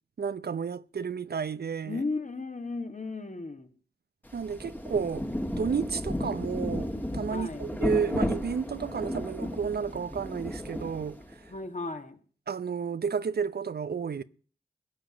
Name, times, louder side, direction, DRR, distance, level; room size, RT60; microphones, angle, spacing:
voice 1, 0.2-2.0 4.3-5.3 5.6-11.2 12.5-14.2, right 6 dB, 70° right, 0.7 m, -31 dB
voice 2, 1.8-3.7 7.3-7.7 11.5-12.2, left 3 dB, 45° left, 1.9 m, -35 dB
Rain, 4.3-11.5, equal, 10° left, 1.7 m, -33 dB
16.5 x 5.7 x 9.1 m
cardioid pair, 40°, 17 cm